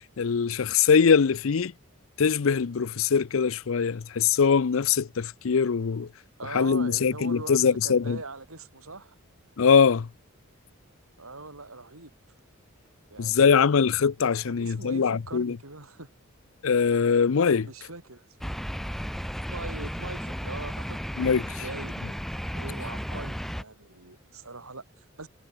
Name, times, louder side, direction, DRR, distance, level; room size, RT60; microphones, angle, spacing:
voice 1, 0.2-1.7 2.2-6.1 6.5-8.2 9.6-10.1 13.2-15.6 16.6-17.7 21.2-21.6, left 6 dB, 70° left, 0.5 m, -22 dB
voice 2, 6.4-9.1 11.2-12.1 13.1-13.8 14.5-16.1 17.6-18.3 19.5-21.0 21.6-22.2 22.5-25.3, right 3 dB, 85° right, 6.7 m, -41 dB
sound 1, 18.4-23.6, equal, ahead, 1.9 m, -34 dB
head